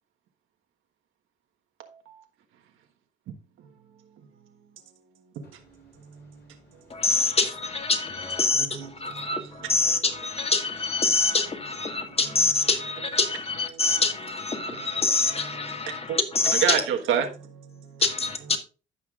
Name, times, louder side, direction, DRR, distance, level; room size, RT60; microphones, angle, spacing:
voice 1, 1.8-2.2 6.0-6.4 8.6-8.9 13.7-13.8 15.9-16.2 16.5-18.0, right 8 dB, 85° right, 1.4 m, -29 dB
voice 2, 5.4-7.0 8.1-8.4, left 2 dB, 55° left, 3.9 m, -51 dB
voice 3, 6.9-16.8 18.0-18.6, left 4 dB, 30° left, 1.8 m, -25 dB
15.0 x 5.8 x 2.4 m
cardioid pair, 90°, 20 cm